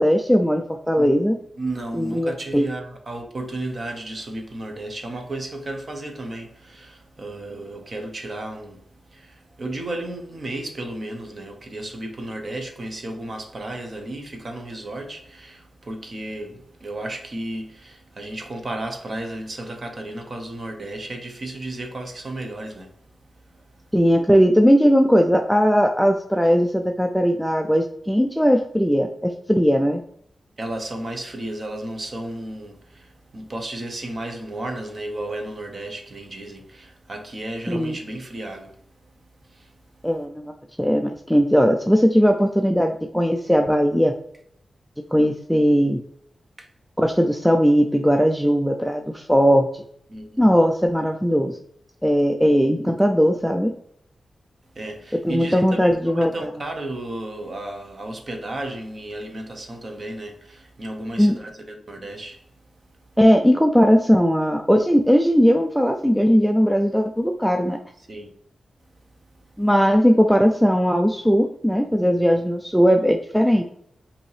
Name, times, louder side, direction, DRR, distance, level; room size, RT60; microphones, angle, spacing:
voice 1, 0.0-1.4 1.9-2.6 23.9-30.0 37.7-38.0 40.0-40.4 40.8-44.1 45.1-46.0 47.0-49.8 50.4-51.6 52.0-53.7 55.2-56.3 61.2-61.3 63.2-67.8 69.6-73.6, equal, ahead, 0.3 m, -18 dB
voice 2, 1.6-22.9 23.5-23.6 30.6-38.8 39.4-39.7 46.6-46.7 50.1-50.5 54.7-62.4 68.1-68.3, right 1 dB, 35° right, 0.8 m, -33 dB
5.1 x 2.8 x 3.2 m
wide cardioid pair, 170°, 0 cm